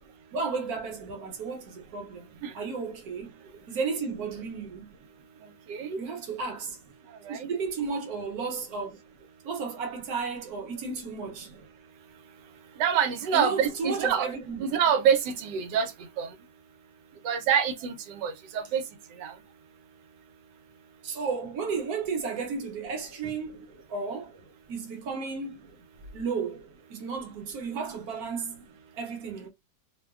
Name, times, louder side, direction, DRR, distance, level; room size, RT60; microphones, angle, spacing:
voice 1, 0.3-2.3 2.5-3.3 3.7-4.9 6.0-6.8 7.3-9.0 9.4-11.5 13.3-14.6 21.0-24.3 24.7-25.6 26.1-28.6 28.9-29.5, right 5 dB, 65° right, 1.2 m, -33 dB
voice 2, 12.8-14.3 14.6-15.9 16.2-16.3 17.2-18.8 19.2-19.3, right 8 dB, 85° right, 1.3 m, -26 dB
3.0 x 2.2 x 2.3 m
omnidirectional pair, 1.8 m